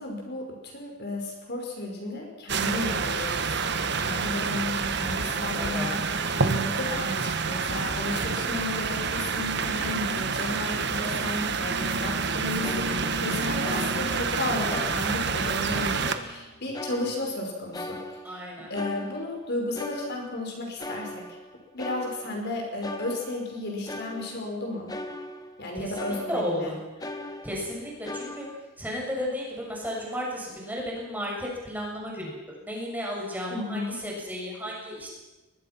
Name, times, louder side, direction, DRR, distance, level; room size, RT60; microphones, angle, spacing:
voice 1, 0.0-18.0 18.3-18.4 18.7-21.2 21.7-25.0 25.6-26.7 33.5-34.0, left 1 dB, 50° left, 1 dB, 5.3 m, -33 dB
sound 1, 2.5-16.2, right 5 dB, 55° right, 1.5 m, -28 dB
voice 2, 5.3-5.9 18.2-18.7 25.8-26.8 27.4-28.5 28.8-35.1, equal, 10° right, -3 dB, 7.1 m, -34 dB
sound 2, 12.6-13.3 13.6-14.4 14.7-16.4 16.7-17.5 17.7-20.5 20.8-22.5 22.8-25.7 25.9-26.6 27.0-28.6, left 1 dB, 20° left, 1.5 m, -40 dB
Marimba xylophone, 16.6-17.6, equal, 80° right, 7.1 m, -50 dB
23.0 x 21.5 x 6.0 m, 1.1 s
head